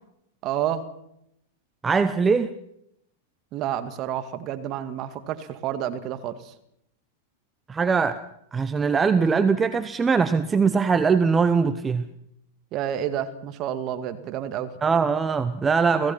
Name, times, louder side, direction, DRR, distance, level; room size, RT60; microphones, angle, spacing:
voice 1, 0.4-0.9 3.5-6.5 12.7-14.7, right 10 dB, 40° right, 2.2 m, -29 dB
voice 2, 1.8-2.5 7.7-12.0 14.8-16.1, right 5 dB, 20° right, 1.0 m, -21 dB
29.5 x 17.0 x 5.9 m
hypercardioid pair, 105°, 0 cm